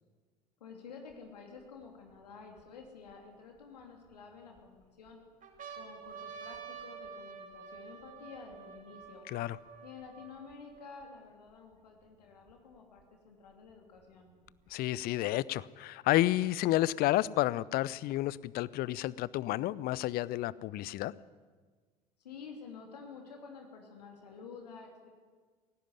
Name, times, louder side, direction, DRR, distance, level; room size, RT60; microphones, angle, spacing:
voice 1, 0.6-5.2 5.7-9.2 9.8-14.3 22.2-25.1, left 5 dB, 75° left, 2 dB, 2.9 m, -50 dB
sound 1, 1.1-1.2 1.9-3.1 3.8-4.6 5.1-5.2 5.4-11.0 11.8-11.9 12.0-13.0 14.0-15.0, right 6 dB, 40° right, 5.4 m, -49 dB
voice 2, 14.7-21.1, left 16 dB, 50° left, 21 dB, 0.7 m, -30 dB
18.0 x 16.5 x 9.7 m, 1.5 s
figure-of-eight pair, 65°, 21 cm